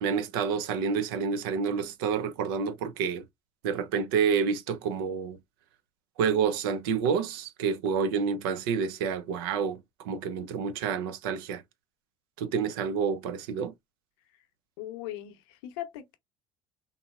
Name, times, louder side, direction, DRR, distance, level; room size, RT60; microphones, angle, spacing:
voice 1, 0.0-3.2 3.6-5.4 6.2-11.6 12.4-13.7, right 6 dB, 80° right, 0.5 m, -29 dB
voice 2, 14.8-16.2, left 13 dB, 80° left, 0.7 m, -39 dB
3.7 x 2.0 x 2.3 m
hypercardioid pair, 70°, 12 cm